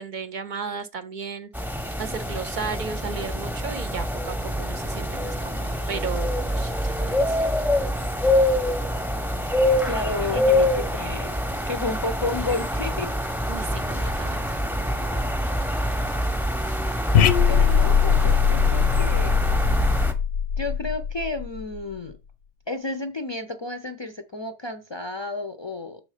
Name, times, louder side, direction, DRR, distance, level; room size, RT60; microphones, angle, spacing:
voice 1, 0.0-7.5 13.5-14.4, right 5 dB, 55° right, 0.6 m, -35 dB
sound 1, 1.5-20.1, left 1 dB, ahead, 0.7 m, -25 dB
voice 2, 9.8-11.3 11.7-13.1 17.5-19.4 20.6-22.1 22.7-26.0, left 2 dB, 40° left, 0.4 m, -31 dB
sound 2, 17.1-21.8, left 7 dB, 85° left, 0.9 m, -21 dB
6.3 x 4.0 x 4.9 m
omnidirectional pair, 1.1 m